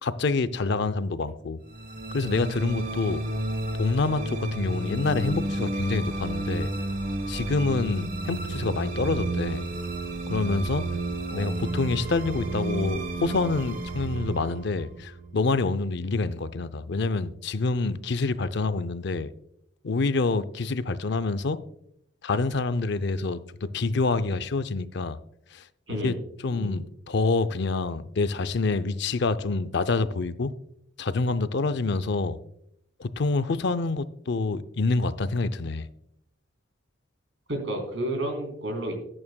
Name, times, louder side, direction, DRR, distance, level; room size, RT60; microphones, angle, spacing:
voice 1, 0.0-1.6 2.1-3.2 3.8-6.7 7.3-9.6 10.3-10.8 11.3-19.3 19.8-21.6 22.2-25.2 25.5-25.6 25.9-26.1 26.4-30.5 31.0-32.4 33.0-35.9, left 3 dB, 55° left, 0.5 m, -27 dB
sound 1, 1.7-16.1, right 2 dB, 45° right, 1.2 m, -31 dB
voice 2, 26.5-26.8 37.5-38.9, right 1 dB, 65° right, 3.5 m, -31 dB
17.5 x 8.6 x 2.2 m
head